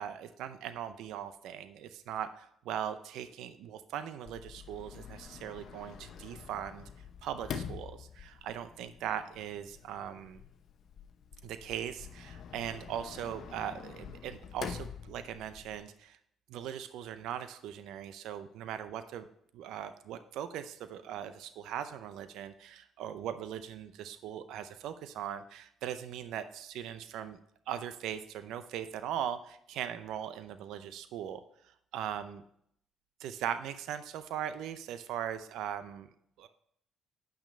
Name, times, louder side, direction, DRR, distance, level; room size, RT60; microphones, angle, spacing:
voice 1, 0.0-6.8 7.2-10.4 11.4-16.2 16.5-19.3 19.5-27.4 27.7-32.4 33.2-36.1 36.4-36.5, right 9 dB, 75° right, 11 dB, 0.6 m, -40 dB
Sliding door, 4.3-15.8, left 7 dB, 65° left, 0.8 m, -46 dB
8.8 x 6.0 x 5.4 m, 0.69 s
supercardioid pair, 65°, 0 cm